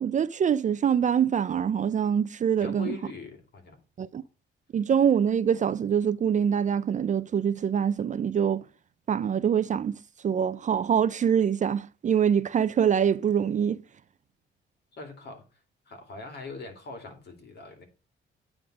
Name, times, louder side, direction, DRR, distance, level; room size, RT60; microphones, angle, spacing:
voice 1, 0.0-3.0 4.0-4.2 4.7-8.6 9.1-10.0 10.2-13.8, right 8 dB, 40° right, 0.4 m, -24 dB
voice 2, 2.6-3.8 14.9-15.6 15.9-17.8, left 4 dB, 55° left, 2.7 m, -42 dB
9.2 x 3.6 x 6.0 m
cardioid pair, 90°, 20 cm